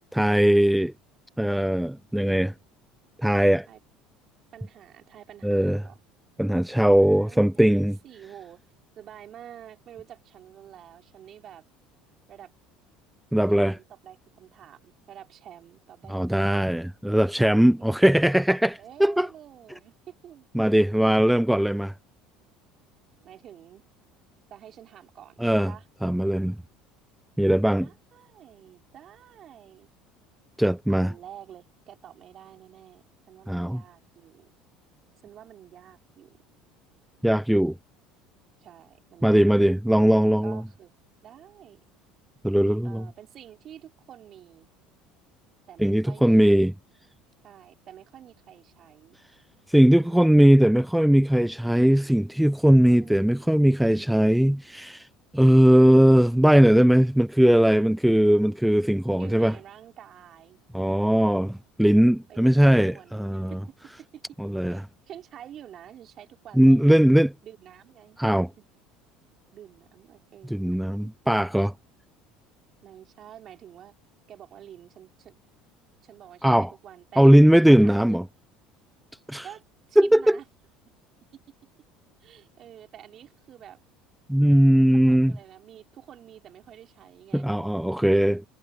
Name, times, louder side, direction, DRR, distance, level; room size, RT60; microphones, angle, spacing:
voice 1, 0.1-0.9 1.4-2.5 3.2-3.7 5.4-5.8 6.4-7.9 13.3-13.8 16.1-19.3 20.5-21.9 25.4-25.7 26.0-26.6 27.4-27.9 30.6-31.1 33.5-33.8 37.2-37.8 39.2-40.6 42.4-43.1 45.8-46.7 49.7-55.1 55.3-59.5 60.7-63.6 64.4-64.8 66.6-67.3 68.2-68.5 70.5-71.7 76.4-76.7 77.2-78.2 79.3-79.5 80.0-80.4 84.3-85.3 87.3-88.4, equal, 5° right, 0.5 m, -19 dB
voice 2, 4.5-6.0 6.9-8.6 9.0-11.6 12.3-12.5 13.5-17.6 18.8-20.7 23.2-23.8 24.5-25.9 27.7-29.9 30.9-34.5 35.2-36.4 38.6-39.5 40.4-40.9 41.2-41.8 42.8-44.7 45.7-46.5 47.4-49.2 50.0-50.5 52.9-53.6 59.2-60.6 62.3-62.5 62.9-63.6 64.1-64.2 64.7-66.9 67.4-68.2 68.6-68.7 69.5-70.8 72.8-73.9 74.3-75.3 76.0-77.3 77.6-78.2 79.4-79.6 79.9-80.5 82.2-83.8 84.9-87.5, right 10 dB, 50° right, 4.0 m, -48 dB
supercardioid pair, 85°, 0 cm